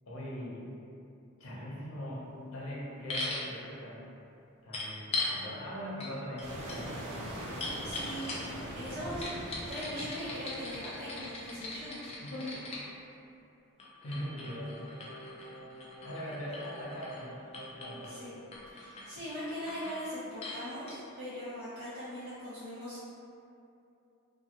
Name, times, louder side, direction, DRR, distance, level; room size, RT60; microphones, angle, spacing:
voice 1, 0.0-0.7 1.4-4.1 4.6-7.1 8.5-9.0 12.2-12.7 14.0-15.0 16.0-17.3 17.6-18.1, equal, 75° left, -6 dB, 0.7 m, -41 dB
sound 1, 3.1-3.5 4.7-5.4 6.0-6.1 6.4-8.6 9.2-12.8 13.8-17.2 17.5-18.1 18.5-19.1 19.4-20.0 20.4-20.6 20.9-21.0, left 2 dB, 30° left, 0.4 m, -40 dB
sound 2, 6.4-12.3, right 1 dB, 85° right, 0.5 m, -43 dB
voice 2, 7.8-12.0 18.0-18.3 18.7-23.0, equal, 45° right, -14 dB, 0.7 m, -40 dB
Singing, 14.4-18.3 18.6-18.7, right 2 dB, 5° left, 0.9 m, -50 dB
2.9 x 2.2 x 2.9 m, 2.6 s
head